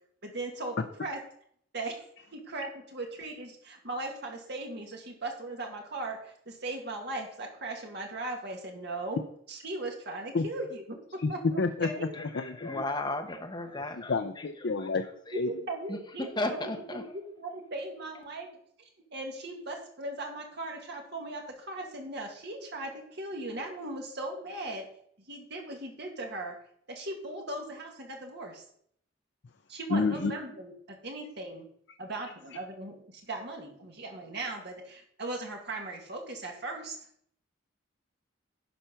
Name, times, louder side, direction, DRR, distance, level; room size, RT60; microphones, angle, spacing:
voice 1, 0.2-1.2 1.7-2.0 2.3-9.2 9.5-12.1 15.3-18.5 18.8-24.9 25.3-26.5 26.9-28.6 29.7-31.7 32.0-37.0, right 2 dB, 55° right, 1 dB, 2.0 m, -38 dB
voice 2, 11.6-11.9 12.2-12.8 14.1-15.0 15.4-15.6 29.9-30.4, left 4 dB, 55° left, 8 dB, 0.5 m, -29 dB
voice 3, 12.1-14.4 14.8-14.9 15.3-15.4 15.9-17.0, left 2 dB, 20° left, 5 dB, 1.0 m, -35 dB
11.5 x 4.5 x 5.7 m, 0.66 s
head